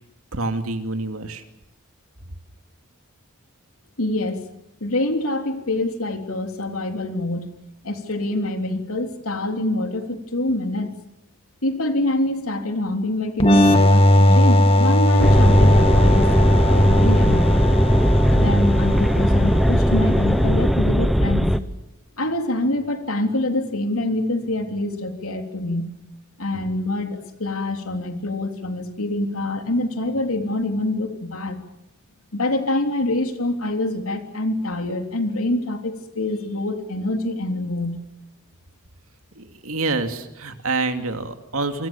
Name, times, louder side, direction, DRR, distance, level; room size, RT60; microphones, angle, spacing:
voice 1, 0.3-1.4 39.4-41.9, right 3 dB, 70° right, 7 dB, 2.6 m, -27 dB
voice 2, 4.0-4.4 4.8-7.5 7.8-10.9 11.6-17.7 18.3-21.5 22.2-25.9 26.4-31.6 32.3-38.0, left 1 dB, 75° left, 5 dB, 3.5 m, -25 dB
sound 1, 13.4-20.9, left 1 dB, 25° left, 2.0 m, -18 dB
sound 2, 15.2-21.6, equal, ahead, 1.0 m, -18 dB
28.0 x 25.0 x 7.3 m, 0.86 s
head